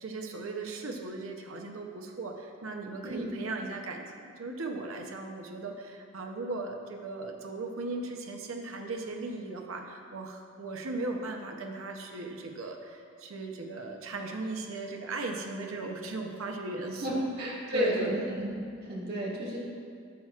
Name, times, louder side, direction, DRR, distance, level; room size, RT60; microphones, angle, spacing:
voice 1, 0.0-17.2 17.7-18.3, right 3 dB, 85° right, 3 dB, 0.7 m, -37 dB
voice 2, 16.9-19.6, equal, 55° right, -5 dB, 1.8 m, -32 dB
11.0 x 7.1 x 2.4 m, 2.2 s
head